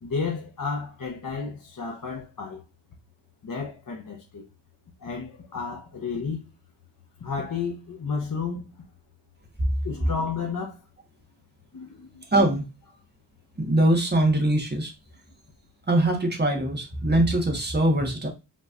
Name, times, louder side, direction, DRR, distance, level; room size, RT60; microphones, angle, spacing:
voice 1, 0.0-2.6 3.4-4.4 5.0-6.5 7.2-8.6 9.8-10.7 11.7-12.2, left 5 dB, 45° left, 0.8 m, -32 dB
voice 2, 12.3-12.6 13.6-14.9 15.9-18.3, right 1 dB, 20° right, 1.2 m, -22 dB
5.4 x 3.0 x 2.4 m
wide cardioid pair, 160°, 47 cm